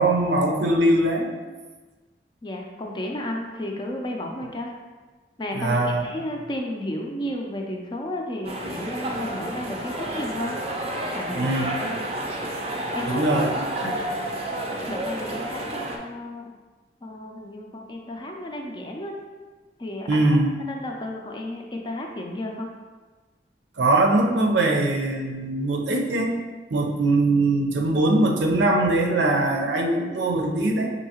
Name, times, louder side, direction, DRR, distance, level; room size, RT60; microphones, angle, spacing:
voice 1, 0.0-1.3 5.5-6.0 11.3-11.7 13.1-13.9 20.1-20.5 23.8-26.3 26.7-30.9, right 2 dB, 85° right, 1 dB, 0.6 m, -21 dB
voice 2, 2.4-4.7 5.4-10.6 11.1-11.5 11.8-12.0 12.9-13.2 13.8-14.0 14.9-16.5 17.0-19.1 19.8-20.4 20.7-22.7, left 1 dB, 25° left, 1 dB, 0.4 m, -33 dB
sound 1, 8.4-16.0, right 1 dB, 35° right, 0.4 m, -30 dB
5.3 x 2.7 x 2.8 m, 1.3 s
head